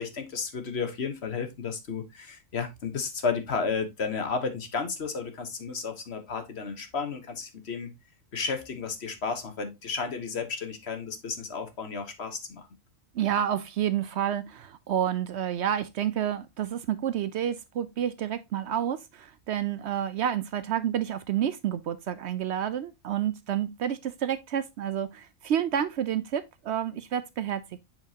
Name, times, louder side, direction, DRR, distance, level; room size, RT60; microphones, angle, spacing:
voice 1, 0.0-7.9 8.3-12.7, left 5 dB, 55° left, 1.3 m, -32 dB
voice 2, 13.1-27.8, right 10 dB, 65° right, 0.8 m, -29 dB
7.7 x 4.4 x 2.8 m
omnidirectional pair, 1.3 m